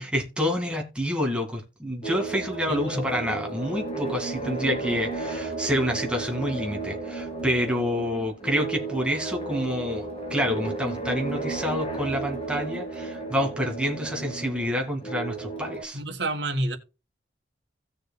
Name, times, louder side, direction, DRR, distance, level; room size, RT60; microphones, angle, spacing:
voice 1, 0.0-16.0, equal, 5° right, 2.2 m, -28 dB
sound 1, 2.0-15.8, right 3 dB, 30° left, 2.3 m, -33 dB
voice 2, 2.7-3.1 15.9-16.8, right 1 dB, 70° right, 1.7 m, -29 dB
17.0 x 6.6 x 2.3 m
head